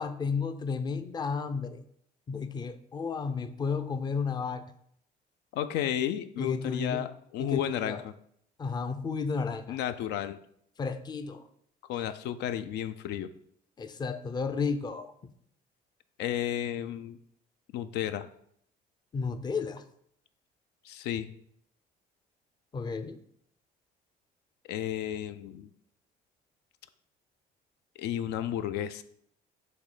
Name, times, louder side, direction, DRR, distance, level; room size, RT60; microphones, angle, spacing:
voice 1, 0.0-1.8 2.3-4.7 6.4-7.1 7.4-8.0 8.6-9.8 10.8-11.4 11.9-12.0 13.8-15.3 19.1-19.8 22.7-23.2, left 5 dB, 25° left, 9 dB, 0.5 m, -32 dB
voice 2, 5.5-8.1 9.7-10.4 11.9-13.3 16.2-17.2 17.7-18.3 20.8-21.3 24.7-25.7 28.0-29.0, left 11 dB, 80° left, 11 dB, 0.4 m, -32 dB
6.3 x 3.2 x 4.9 m, 0.68 s
cardioid pair, 110°, 17 cm